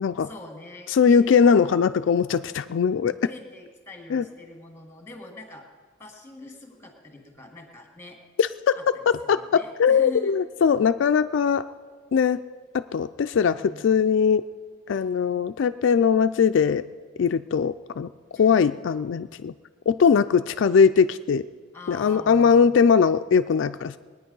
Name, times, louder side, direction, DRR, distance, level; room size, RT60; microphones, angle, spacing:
voice 1, 0.2-1.8 3.2-5.7 6.0-8.2 8.7-8.9 9.2-10.3 13.3-13.9 18.3-18.6 21.7-22.8, left 2 dB, 10° left, 2 dB, 1.9 m, -43 dB
voice 2, 0.9-3.1 4.1-4.2 8.4-8.7 9.3-11.6 12.1-12.4 12.7-14.5 14.9-16.8 17.2-18.1 18.4-19.5 19.9-21.4 21.9-24.0, left 6 dB, 70° left, 10 dB, 0.3 m, -20 dB
20.5 x 9.3 x 5.4 m, 1.5 s
head